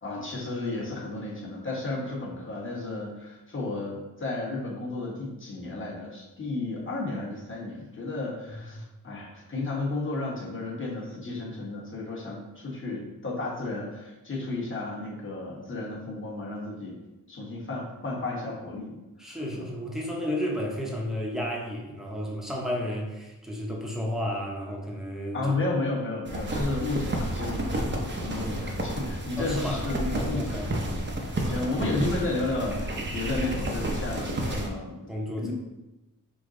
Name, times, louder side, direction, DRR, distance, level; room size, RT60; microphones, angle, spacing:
voice 1, 0.0-16.9 17.3-19.0 19.3-19.7 25.3-35.1 35.4-35.5, left 2 dB, 35° left, -4 dB, 1.3 m, -33 dB
voice 2, 8.5-8.9 19.2-25.7 29.4-29.9 30.1-30.7 31.4-31.7 35.1-35.5, equal, ahead, -2 dB, 0.8 m, -32 dB
sound 1, 26.3-34.7, right 1 dB, 30° right, 0.7 m, -31 dB
5.2 x 2.2 x 3.7 m, 1.0 s
wide cardioid pair, 90°, 36 cm